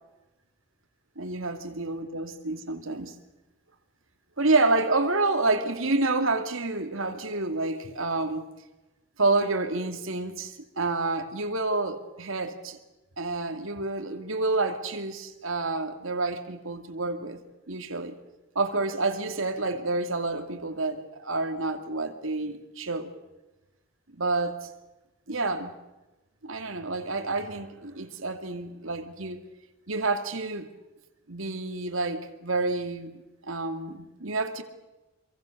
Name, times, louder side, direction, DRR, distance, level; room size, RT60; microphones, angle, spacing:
voice 1, 1.2-3.1 4.4-8.5 9.2-12.8 13.2-17.4 17.7-18.2 18.5-23.1 24.1-24.7 25.3-25.7 26.4-29.4 29.9-30.7 31.3-34.6, right 3 dB, 80° right, 2.5 m, -29 dB
27.0 x 23.5 x 6.8 m
head